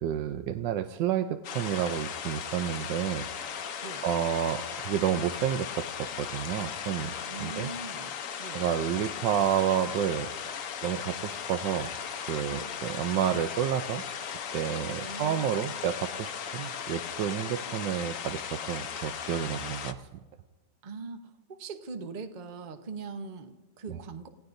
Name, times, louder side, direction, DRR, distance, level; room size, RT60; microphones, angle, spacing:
voice 1, 0.0-3.3 4.0-7.1 7.4-7.7 8.5-10.3 10.8-11.9 12.3-14.0 14.5-18.4 18.7-19.9 23.9-24.0, right 10 dB, 80° right, 8 dB, 1.3 m, -30 dB
sound 1, 1.4-19.9, left 7 dB, 55° left, 1.0 m, -37 dB
voice 2, 7.3-8.7 12.5-12.7 14.8-15.8 20.8-24.3, right 4 dB, 35° right, 7 dB, 0.8 m, -41 dB
29.0 x 17.5 x 2.6 m, 1.3 s
omnidirectional pair, 2.0 m